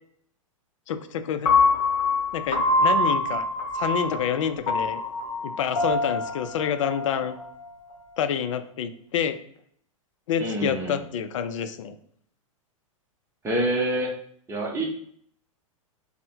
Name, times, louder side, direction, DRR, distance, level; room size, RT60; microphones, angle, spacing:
voice 1, 0.9-1.5 2.3-3.5 3.7-5.0 5.4-7.4 8.2-9.4 10.3-12.0, left 8 dB, 60° left, 10 dB, 0.4 m, -28 dB
Piano, 1.5-7.6, left 3 dB, 35° left, 0.9 m, -25 dB
voice 2, 10.4-11.0 13.4-14.1 14.5-14.8, right 1 dB, 15° right, 0 dB, 0.8 m, -26 dB
3.3 x 2.1 x 4.3 m, 0.63 s
hypercardioid pair, 105°, 18 cm